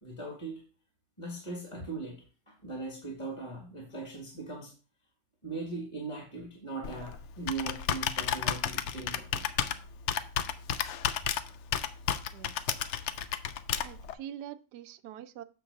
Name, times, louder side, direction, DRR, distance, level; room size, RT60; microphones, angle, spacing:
voice 1, 0.0-0.6 1.2-4.7 5.4-9.7, right 3 dB, 20° left, 1.6 m, -40 dB
Computer keyboard, 6.8-14.1, left 9 dB, 70° left, 0.7 m, -33 dB
voice 2, 13.8-15.4, right 11 dB, 85° right, 1.2 m, -44 dB
7.0 x 3.8 x 6.5 m
omnidirectional pair, 1.7 m